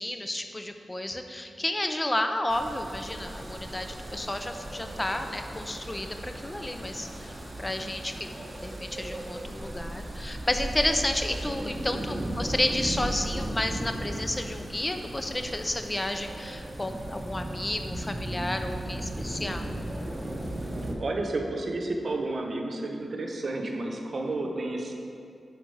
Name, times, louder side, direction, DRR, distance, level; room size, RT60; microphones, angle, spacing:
voice 1, 0.0-8.3 8.6-19.7, left 1 dB, 25° left, 6 dB, 0.5 m, -31 dB
sound 1, 2.5-20.9, right 1 dB, 30° right, 0.9 m, -36 dB
voice 2, 11.5-12.1 21.0-24.9, right 2 dB, 60° right, 1 dB, 0.8 m, -32 dB
6.1 x 5.2 x 4.6 m, 2.5 s
cardioid pair, 40°, 0 cm